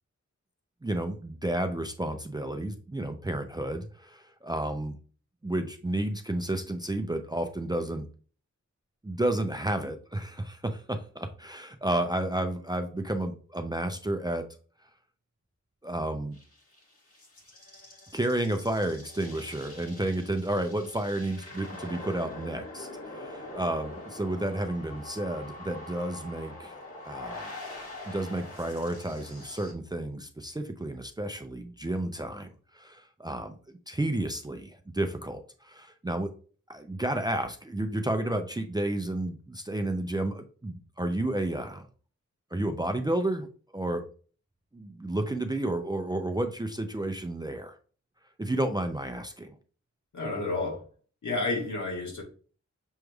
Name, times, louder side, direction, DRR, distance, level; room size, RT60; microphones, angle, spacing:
voice 1, 0.8-5.0 5.4-8.1 9.0-14.5 15.8-16.4 18.1-26.8 27.0-27.5 28.1-33.6 33.9-36.3 36.7-41.9 42.5-43.5 43.7-44.0 44.7-47.8 48.4-49.6, right 1 dB, 15° right, 6 dB, 0.4 m, -31 dB
sound 1, 16.3-29.7, left 2 dB, 50° left, 1.5 m, -44 dB
voice 2, 50.1-50.8 51.2-52.2, left 3 dB, 75° left, -1 dB, 1.6 m, -30 dB
6.2 x 3.2 x 2.3 m, 0.40 s
wide cardioid pair, 95°, 30 cm